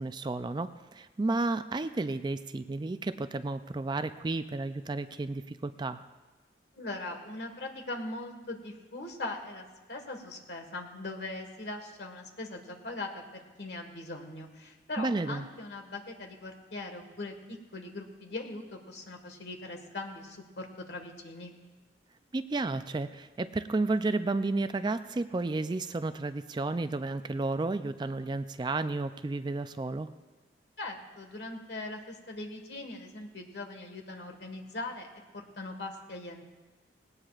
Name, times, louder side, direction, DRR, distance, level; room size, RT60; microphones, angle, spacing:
voice 1, 0.0-6.1 15.0-15.5 22.3-30.1, right 3 dB, 25° right, 11 dB, 0.3 m, -32 dB
voice 2, 6.7-21.5 30.8-36.4, left 2 dB, 65° left, 3 dB, 1.6 m, -41 dB
18.5 x 17.5 x 2.4 m, 1.3 s
head